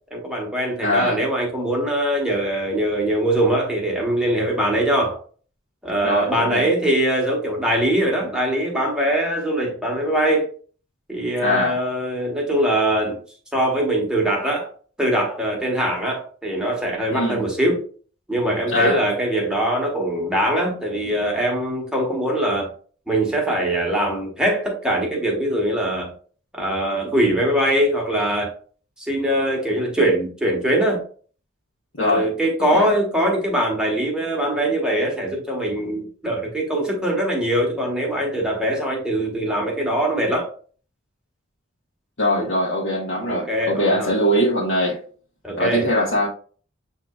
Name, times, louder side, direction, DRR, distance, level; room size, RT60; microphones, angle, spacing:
voice 1, 0.1-5.2 5.8-10.5 11.1-13.2 13.5-14.7 15.0-17.8 18.3-22.7 23.1-26.1 26.5-28.5 29.0-31.0 32.0-40.5 42.4-42.5 43.3-44.1 45.4-45.9, right 1 dB, 5° right, 1.1 m, -22 dB
voice 2, 0.8-1.2 6.0-6.7 11.4-11.8 17.1-17.4 18.7-19.1 31.9-32.3 32.7-32.9 42.2-45.0 45.6-46.3, left 1 dB, 70° left, 1.1 m, -22 dB
7.2 x 2.8 x 2.4 m
head